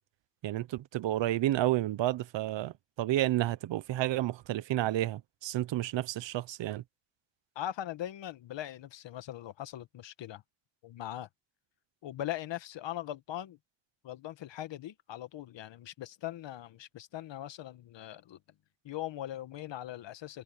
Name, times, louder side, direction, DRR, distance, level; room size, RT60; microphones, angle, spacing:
voice 1, 0.4-6.8, right 14 dB, 85° right, 0.9 m, -31 dB
voice 2, 7.5-10.4 10.8-11.3 12.0-13.6 14.0-18.4 18.8-20.4, left 12 dB, 80° left, 1.4 m, -40 dB
cardioid pair, 85°, 43 cm